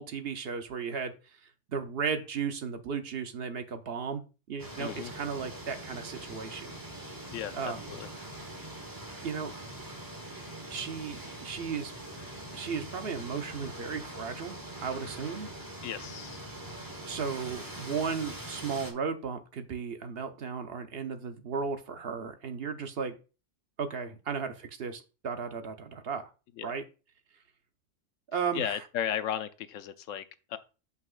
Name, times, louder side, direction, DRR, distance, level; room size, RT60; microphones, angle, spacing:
voice 1, 0.0-4.2 4.5-6.7 7.5-7.8 9.2-9.5 10.7-11.9 12.5-15.5 17.0-23.1 23.8-26.3 26.6-26.8 28.3-28.8, right 6 dB, 60° right, 0.9 m, -35 dB
sound 1, 4.6-18.9, right 1 dB, 20° right, 1.1 m, -43 dB
voice 2, 4.8-5.1 7.3-8.1 15.8-16.4 26.6-26.7 28.5-30.2 30.5-30.6, left 9 dB, 90° left, 1.0 m, -35 dB
8.1 x 5.4 x 2.4 m
omnidirectional pair, 1.3 m